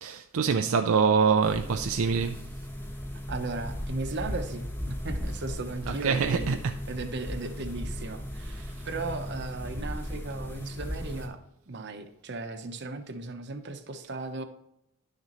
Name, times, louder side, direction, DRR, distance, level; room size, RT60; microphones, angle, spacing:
voice 1, 0.0-2.4 5.9-6.6 8.6-8.9, right 6 dB, 70° right, 0.5 m, -25 dB
sound 1, 1.4-11.3, equal, 10° left, 1.1 m, -36 dB
voice 2, 3.3-6.6 6.9-11.4 11.7-14.4, right 3 dB, 50° right, 0.9 m, -36 dB
11.0 x 6.7 x 3.0 m
head